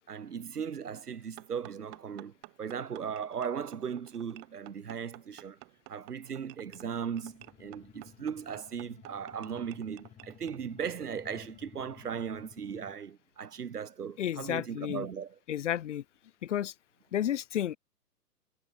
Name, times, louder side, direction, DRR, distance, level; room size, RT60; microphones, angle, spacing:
voice 1, 0.1-2.3 2.6-5.6 5.9-15.4, right 7 dB, 70° right, 2.1 m, -37 dB
sound 1, 1.4-10.6, right 28 dB, 25° right, 2.8 m, -53 dB
sound 2, 6.7-13.0, left 9 dB, 15° left, 5.0 m, -55 dB
voice 2, 14.2-15.1 15.5-16.0 16.4-16.7 17.1-17.8, left 11 dB, 45° left, 2.4 m, -31 dB
hypercardioid pair, 140°, 48 cm